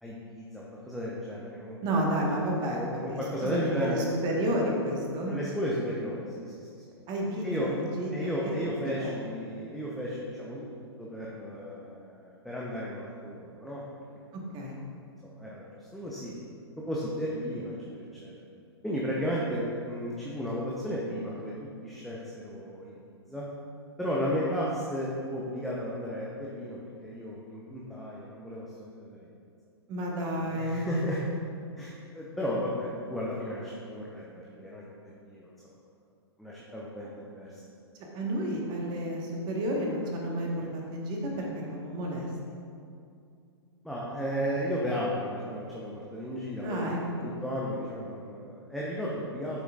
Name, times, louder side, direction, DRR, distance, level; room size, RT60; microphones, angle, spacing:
voice 1, 0.0-4.0 5.3-6.2 7.4-7.7 8.1-13.8 15.2-16.3 16.8-18.3 18.8-23.5 24.0-29.3 30.4-31.2 31.8-35.5 36.4-37.6 43.8-49.6, equal, ahead, -6 dB, 0.8 m, -34 dB
voice 2, 1.8-5.3 7.1-8.1 8.4-8.6 9.0-9.2 14.5-14.8 29.9-30.9 38.1-42.3 46.6-47.3, right 1 dB, 30° right, -1 dB, 1.5 m, -31 dB
9.1 x 7.1 x 2.5 m, 2.4 s
figure-of-eight pair, 115°, 15 cm